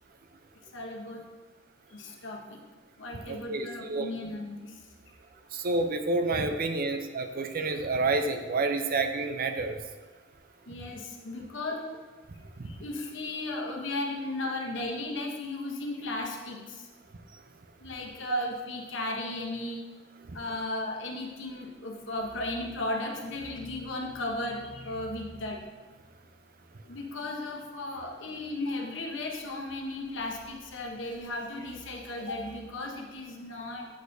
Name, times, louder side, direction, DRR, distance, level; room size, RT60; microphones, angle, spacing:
voice 1, 0.7-1.3 1.9-2.6 3.0-4.8 5.1-5.2 10.7-12.0 12.6-16.9 17.8-19.8 20.3-25.6 26.8-33.9, left 2 dB, 70° left, 0 dB, 1.0 m, -35 dB
voice 2, 3.3-4.1 5.5-9.8 12.6-12.7 18.3-18.4, right 3 dB, 50° right, 7 dB, 0.5 m, -29 dB
8.1 x 6.5 x 2.7 m, 1.3 s
head